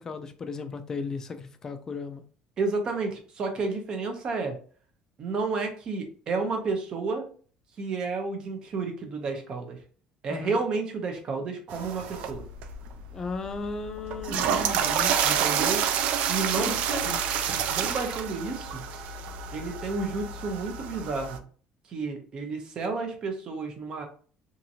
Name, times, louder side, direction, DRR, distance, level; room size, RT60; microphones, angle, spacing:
voice 1, 0.0-2.2 10.3-10.6 13.1-15.1 16.5-17.2, left 4 dB, 25° left, 0.3 m, -35 dB
voice 2, 2.6-4.6 5.2-7.3 7.8-9.8 10.2-12.4 15.2-15.8 16.3-17.2 17.5-18.9 19.5-21.5 21.9-24.1, right 4 dB, 35° right, 0.7 m, -31 dB
sound 1, 11.7-21.4, right 8 dB, 65° right, 0.3 m, -29 dB
2.8 x 2.5 x 2.7 m
cardioid pair, 155°, 2 cm